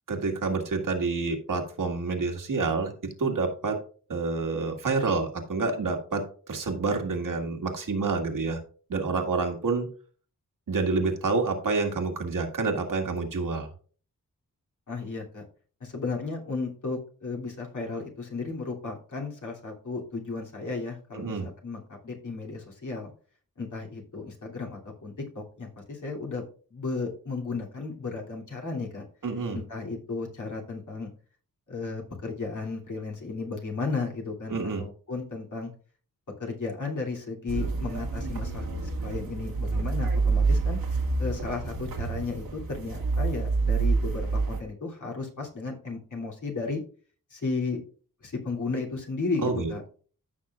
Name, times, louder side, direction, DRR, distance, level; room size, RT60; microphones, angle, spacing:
voice 1, 0.1-2.9 3.2-3.8 4.1-8.6 8.9-9.9 10.7-13.7 21.1-21.5 29.2-29.6 34.5-34.8 49.4-49.7, right 4 dB, 70° right, 3 dB, 1.9 m, -28 dB
voice 2, 14.9-15.4 15.8-23.1 23.6-26.4 26.7-29.0 29.5-31.1 31.7-35.7 36.4-40.8 41.2-46.8 47.3-47.8 48.2-49.8, left 3 dB, 60° left, -1 dB, 2.9 m, -34 dB
sound 1, 37.5-44.6, right 4 dB, 85° right, 1.9 m, -27 dB
15.0 x 6.0 x 2.4 m, 0.41 s
wide cardioid pair, 75°, 34 cm